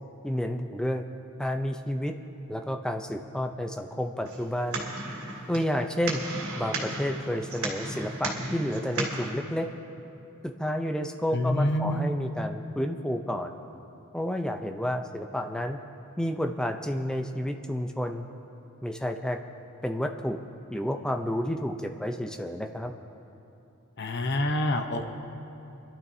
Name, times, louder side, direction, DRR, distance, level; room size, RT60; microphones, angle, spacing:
voice 1, 0.2-1.0 1.4-2.1 2.5-4.9 5.5-6.2 6.6-9.7 10.4-13.5 14.1-15.8 16.2-18.3 18.8-19.4 19.8-20.4 20.7-22.9, equal, 5° left, 4 dB, 0.5 m, -30 dB
sound 1, 4.3-9.3, right 2 dB, 80° right, 2.6 m, -34 dB
voice 2, 11.3-12.1 24.0-25.1, left 1 dB, 50° left, 5 dB, 0.8 m, -27 dB
28.5 x 12.0 x 2.7 m, 2.8 s
head